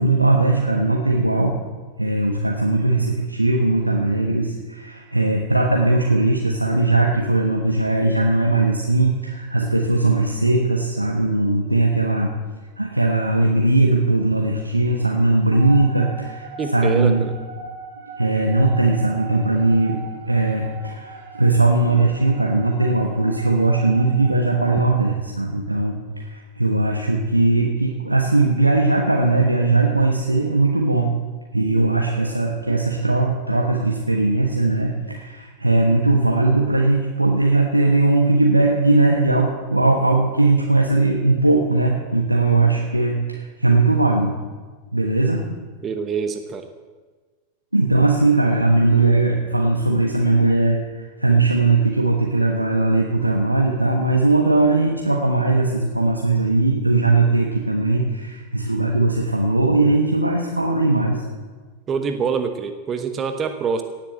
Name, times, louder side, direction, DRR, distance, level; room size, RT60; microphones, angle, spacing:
voice 1, 0.0-1.6 2.0-12.4 12.8-16.5 16.7-17.3 18.2-31.1 31.5-44.4 44.9-45.4 47.7-61.2, right 2 dB, 85° right, 0 dB, 1.2 m, -19 dB
sound 1, 15.5-25.0, right 4 dB, 55° right, 2.2 m, -39 dB
voice 2, 16.6-17.3 45.8-46.7 61.9-63.8, right 6 dB, 25° right, 8 dB, 1.0 m, -25 dB
18.0 x 7.5 x 7.6 m, 1.4 s
figure-of-eight pair, 90°, 0 cm